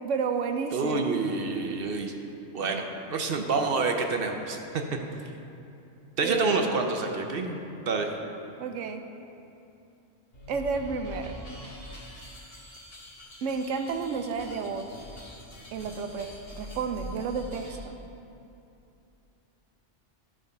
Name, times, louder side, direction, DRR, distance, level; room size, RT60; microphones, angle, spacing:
voice 1, 0.0-1.0 6.2-6.6 8.6-9.0 10.5-11.3 13.4-14.9 15.7-18.0, right 5 dB, 85° right, 6 dB, 1.0 m, -31 dB
voice 2, 0.7-2.1 2.5-4.6 6.2-7.6 7.9-8.1, right 3 dB, 55° right, 4 dB, 0.8 m, -28 dB
sound 1, 10.3-17.9, equal, 50° left, 1.6 m, -44 dB
11.5 x 4.9 x 5.3 m, 2.7 s
omnidirectional pair, 1.3 m